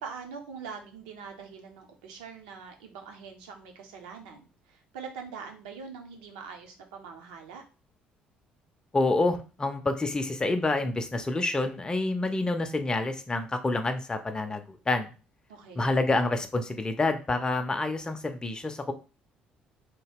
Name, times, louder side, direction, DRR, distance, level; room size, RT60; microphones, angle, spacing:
voice 1, 0.0-7.6 15.5-16.0, right 5 dB, 70° right, 4 dB, 0.6 m, -43 dB
voice 2, 8.9-15.1 15.8-18.9, left 2 dB, 15° left, 7 dB, 0.5 m, -28 dB
2.9 x 2.2 x 3.4 m, 0.34 s
figure-of-eight pair, 50°, 4 cm